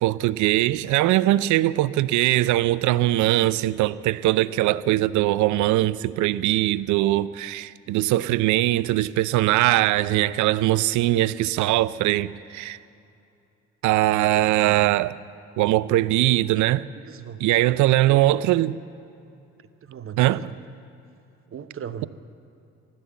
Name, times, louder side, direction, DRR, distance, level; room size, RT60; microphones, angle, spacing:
voice 1, 0.0-12.8 13.8-15.2 15.6-16.9 17.4-18.8 20.2-20.4, right 15 dB, 65° right, 0.5 m, -21 dB
voice 2, 17.0-17.5 18.0-18.3 19.8-20.5 21.5-22.1, right 8 dB, 40° right, 1.0 m, -37 dB
15.0 x 12.5 x 7.1 m
hypercardioid pair, 55°, 32 cm